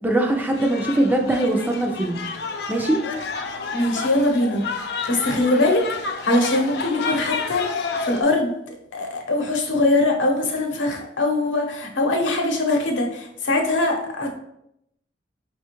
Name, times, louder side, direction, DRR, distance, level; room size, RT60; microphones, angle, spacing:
voice 1, 0.0-2.2 2.7-3.0, right 1 dB, 10° right, 1 dB, 0.3 m, -21 dB
sound 1, 0.5-8.2, left 4 dB, 60° left, 0.4 m, -30 dB
voice 2, 3.7-4.6 5.1-5.8 6.2-8.5 8.9-14.3, left 2 dB, 90° left, 2 dB, 0.8 m, -22 dB
4.9 x 2.2 x 2.9 m, 0.77 s
head